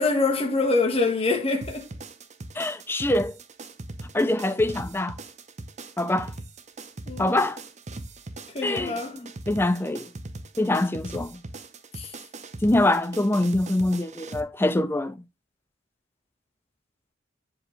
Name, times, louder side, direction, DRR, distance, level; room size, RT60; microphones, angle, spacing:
voice 1, 0.0-1.9 7.1-7.4 8.5-9.2 12.0-12.1, left 3 dB, 30° left, 1.4 m, -25 dB
sound 1, 1.6-14.4, right 2 dB, 35° right, 0.8 m, -40 dB
voice 2, 2.6-3.3 4.1-5.2 6.0-6.3 7.2-7.6 8.6-10.1 10.6-11.4 12.6-15.2, left 1 dB, 10° left, 0.4 m, -24 dB
7.3 x 5.1 x 3.1 m
head